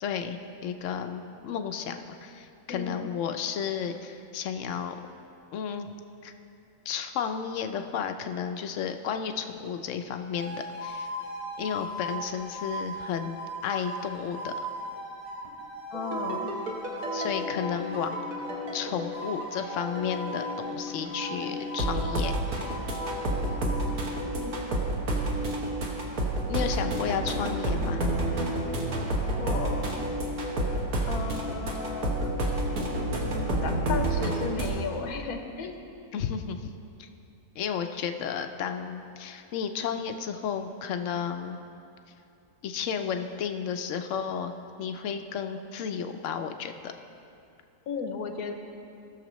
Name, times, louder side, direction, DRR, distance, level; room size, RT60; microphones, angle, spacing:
voice 1, 0.0-4.9 5.5-5.9 6.2-6.3 6.9-11.1 11.6-13.4 13.6-14.5 17.1-18.1 18.7-22.7 26.5-28.1 36.1-36.6 37.0-37.1 37.6-41.6 42.6-44.5 44.8-46.9, left 7 dB, 70° left, 7 dB, 0.8 m, -32 dB
voice 2, 2.7-3.2 15.9-16.5 24.3-24.5 29.4-30.0 31.1-32.4 33.6-35.8 47.9-48.5, left 5 dB, 85° left, 4 dB, 1.3 m, -35 dB
sound 1, 10.3-18.6 19.1-20.8 21.1-23.7, right 1 dB, 40° right, 3.0 m, -38 dB
sound 2, 15.9-34.7, right 1 dB, 70° right, 1.7 m, -30 dB
18.0 x 6.6 x 3.1 m, 2.6 s
omnidirectional pair, 1.6 m